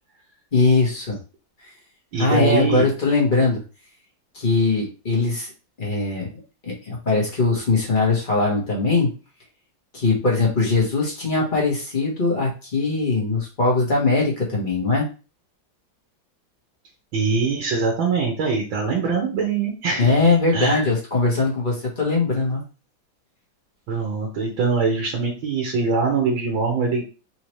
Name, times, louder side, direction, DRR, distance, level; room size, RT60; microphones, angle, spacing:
voice 1, 0.5-1.2 2.2-3.6 4.3-5.5 5.8-6.3 6.6-9.1 9.9-15.1 20.0-22.6, left 3 dB, 30° left, -3 dB, 1.3 m, -21 dB
voice 2, 2.1-2.9 17.1-20.9 23.9-27.0, right 4 dB, 75° right, -1 dB, 1.8 m, -23 dB
4.3 x 2.7 x 3.1 m, 0.33 s
omnidirectional pair, 2.1 m